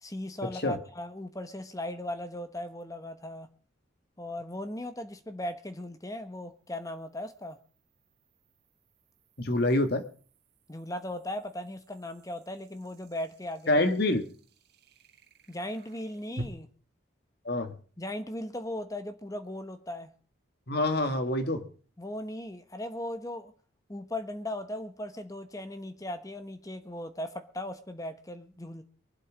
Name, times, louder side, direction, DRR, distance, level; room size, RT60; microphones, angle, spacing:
voice 1, 0.0-3.5 4.2-7.6 10.7-13.7 15.5-16.7 18.0-20.1 22.0-23.5 23.9-28.8, left 1 dB, 15° left, 9 dB, 1.0 m, -38 dB
sound 1, 2.8-2.9 6.3-16.5, equal, 55° right, 1.8 m, -50 dB
voice 2, 9.4-10.0 13.7-14.2 17.5-17.8 20.7-21.6, left 1 dB, 50° left, 9 dB, 1.6 m, -26 dB
23.5 x 7.8 x 5.0 m, 0.41 s
head